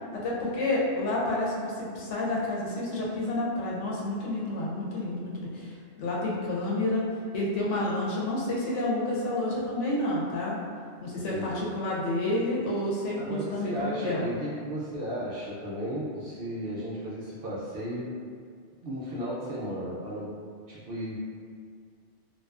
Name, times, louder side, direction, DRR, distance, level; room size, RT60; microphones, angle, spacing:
voice 1, 0.2-7.0 7.3-10.5 11.0-14.3, left 1 dB, 80° left, -5 dB, 0.9 m, -29 dB
voice 2, 11.1-11.7 13.2-18.1 18.8-20.3 20.7-21.2, equal, 60° right, -8 dB, 0.6 m, -35 dB
2.5 x 2.2 x 2.3 m, 2.1 s
omnidirectional pair, 1.2 m